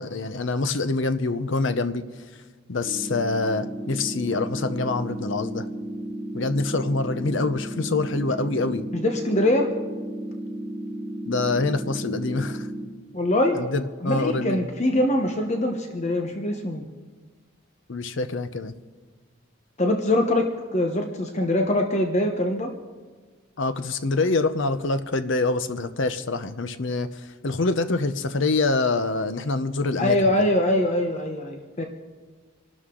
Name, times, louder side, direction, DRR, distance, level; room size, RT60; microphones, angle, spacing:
voice 1, 0.0-2.0 2.7-5.7 6.3-8.8 11.3-12.7 13.5-14.7 17.9-18.7 23.6-30.3, left 3 dB, 60° left, 11 dB, 0.7 m, -25 dB
sound 1, 2.8-12.8, right 1 dB, 5° left, 2.7 m, -34 dB
voice 2, 8.9-9.7 13.1-13.6 14.0-16.8 19.8-22.7 30.0-31.9, left 1 dB, 35° left, 3 dB, 1.0 m, -23 dB
26.0 x 12.5 x 3.8 m, 1.4 s
head